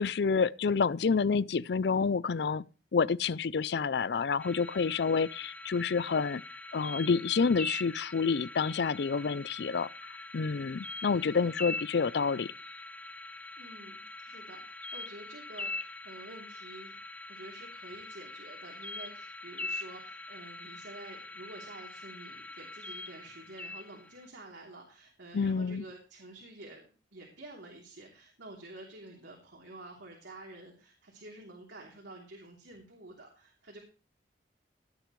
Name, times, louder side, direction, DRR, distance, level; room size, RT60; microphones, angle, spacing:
voice 1, 0.0-2.6 2.9-6.4 6.7-12.5 25.3-25.8, left 5 dB, 65° left, 0.5 m, -28 dB
sound 1, 4.4-24.3, left 2 dB, 10° left, 0.5 m, -43 dB
voice 2, 13.6-16.9 17.3-33.8, right 2 dB, 80° right, 3.2 m, -49 dB
17.0 x 10.0 x 3.2 m
head